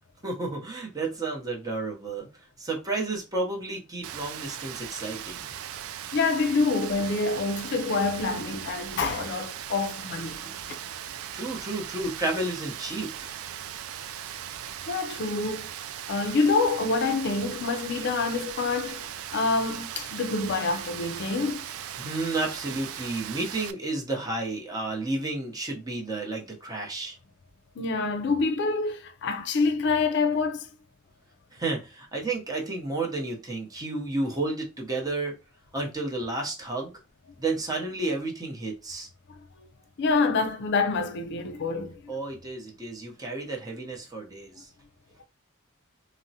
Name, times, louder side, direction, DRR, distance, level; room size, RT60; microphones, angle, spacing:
voice 1, 0.2-2.3 2.6-5.4 10.4-10.6 11.3-13.1 22.0-27.2 31.5-35.3 35.7-36.9 37.4-39.1 42.1-44.7, right 2 dB, 15° right, 0.7 m, -31 dB
Rain, 4.0-23.7, right 10 dB, 75° right, 0.3 m, -38 dB
voice 2, 6.1-10.4 14.9-15.7 16.1-21.7 27.8-30.7 40.0-42.1, left 4 dB, 55° left, 0.4 m, -26 dB
3.5 x 2.0 x 2.7 m
head